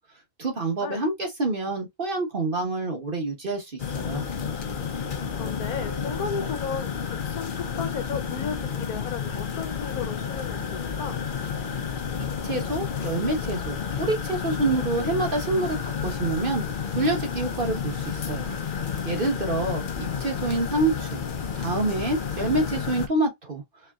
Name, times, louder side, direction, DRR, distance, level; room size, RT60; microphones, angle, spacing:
voice 1, 0.4-4.2 12.4-16.6 17.0-18.6 19.0-21.2 21.5-23.6, right 2 dB, 35° right, 1.3 m, -27 dB
sound 1, 3.8-23.1, left 7 dB, 45° left, 0.7 m, -31 dB
voice 2, 5.4-6.9 7.2-11.2 19.6-19.7, left 6 dB, 75° left, 1.2 m, -34 dB
4.6 x 3.9 x 2.4 m
omnidirectional pair, 1.6 m